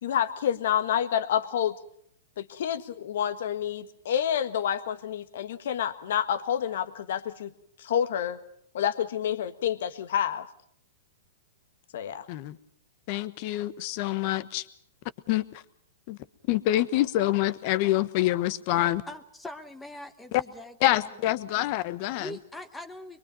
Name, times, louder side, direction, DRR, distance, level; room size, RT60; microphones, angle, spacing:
voice 1, 0.0-1.7 2.4-7.5 7.8-8.4 8.7-10.4 11.9-12.2, left 9 dB, 65° left, 11 dB, 1.6 m, -28 dB
voice 2, 13.1-14.7 15.3-15.6 16.1-16.2 16.5-19.0 20.3-20.4 20.8-22.3, left 15 dB, 45° left, 14 dB, 1.2 m, -26 dB
voice 3, 19.1-20.8 21.0-21.1 22.2-23.2, left 1 dB, 10° left, 9 dB, 1.2 m, -42 dB
23.0 x 23.0 x 5.6 m, 0.68 s
hypercardioid pair, 130°, 0 cm